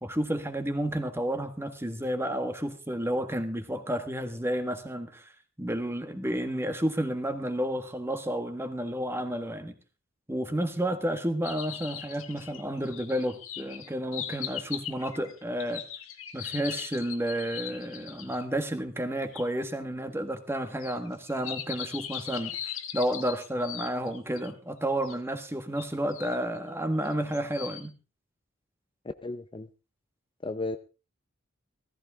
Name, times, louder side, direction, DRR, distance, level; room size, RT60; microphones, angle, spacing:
voice 1, 0.0-5.3 5.6-9.7 10.3-15.8 16.3-22.6 22.9-27.9, right 1 dB, 10° right, 8 dB, 1.6 m, -31 dB
sound 1, 11.4-18.4 19.3-19.4 20.8-24.5 25.0-25.2 25.8-26.4 27.0-27.9, left 10 dB, 85° left, 1.7 m, -39 dB
voice 2, 29.2-29.7 30.4-30.8, left 2 dB, 25° left, 9 dB, 0.6 m, -34 dB
16.0 x 14.5 x 3.6 m, 0.31 s
head